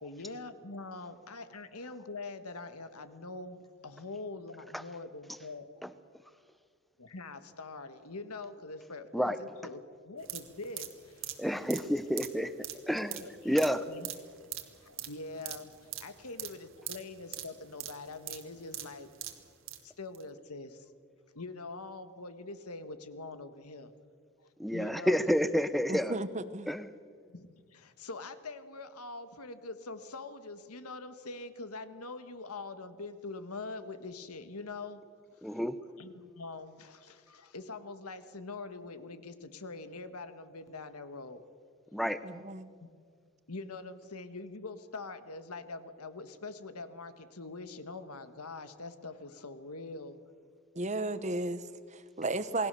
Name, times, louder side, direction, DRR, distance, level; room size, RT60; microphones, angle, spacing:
voice 1, 0.0-5.9 7.0-11.4 13.2-13.6 13.9-14.1 14.8-19.1 19.8-20.9 21.4-23.9 24.4-25.3 27.3-35.0 35.3-35.6 36.0-41.4 42.8-42.9 43.5-50.2, left 3 dB, 85° left, 10 dB, 1.6 m, -44 dB
sound 1, 10.2-19.8 20.1-20.2, right 13 dB, 60° right, 2.0 m, -43 dB
voice 2, 11.4-12.5 12.9-13.8 24.6-26.2 26.7-26.9 35.4-35.8 41.9-42.2, equal, ahead, 12 dB, 0.8 m, -29 dB
voice 3, 25.9-26.7 42.2-42.7 50.7-52.7, right 2 dB, 30° right, 12 dB, 1.1 m, -34 dB
28.0 x 20.0 x 6.9 m, 2.1 s
head